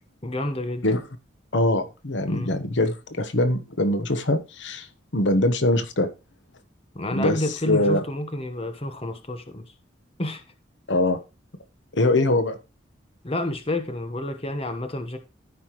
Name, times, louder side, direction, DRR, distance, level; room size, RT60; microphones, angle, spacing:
voice 1, 0.2-0.8 2.3-2.5 6.9-9.6 10.2-10.4 13.2-15.2, left 1 dB, 30° left, 1.2 m, -29 dB
voice 2, 1.5-4.9 5.1-6.1 7.1-7.4 7.6-8.0 10.9-11.2 11.9-12.6, left 1 dB, 70° left, 1.1 m, -22 dB
14.5 x 5.6 x 3.1 m
head